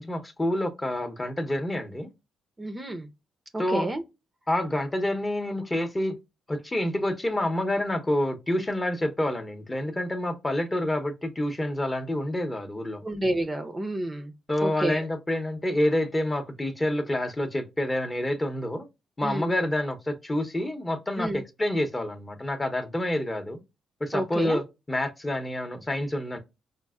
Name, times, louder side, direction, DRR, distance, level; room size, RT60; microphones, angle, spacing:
voice 1, 0.0-2.1 3.6-3.9 4.5-6.2 6.5-13.0 14.5-18.9 19.2-23.6 24.0-26.4, left 1 dB, 20° left, 0.7 m, -28 dB
voice 2, 2.6-3.1 3.5-4.0 13.0-14.3 14.6-15.1 19.2-19.5 21.2-21.4 24.1-24.6, right 1 dB, 20° right, 0.5 m, -29 dB
5.1 x 2.0 x 2.3 m
cardioid pair, 90°, 0 cm